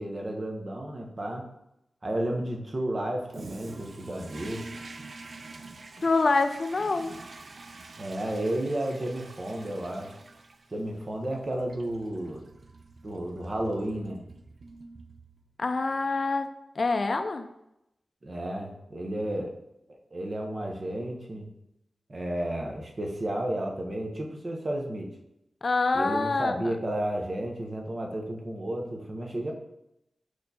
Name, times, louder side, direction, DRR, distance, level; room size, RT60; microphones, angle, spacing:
voice 1, 0.0-1.4 2.0-4.6 8.0-10.1 10.7-12.4 13.0-14.2 18.2-19.5 19.9-21.5 22.1-25.1 25.9-29.5, right 1 dB, 40° right, 2 dB, 0.7 m, -32 dB
Toilet flush, 3.3-15.6, right 3 dB, 55° right, 0.3 m, -47 dB
voice 2, 6.0-7.2 15.6-16.5 16.8-17.5 25.6-26.7, left 3 dB, 50° left, 8 dB, 0.3 m, -26 dB
4.6 x 4.2 x 2.7 m, 0.84 s
wide cardioid pair, 105°, 0 cm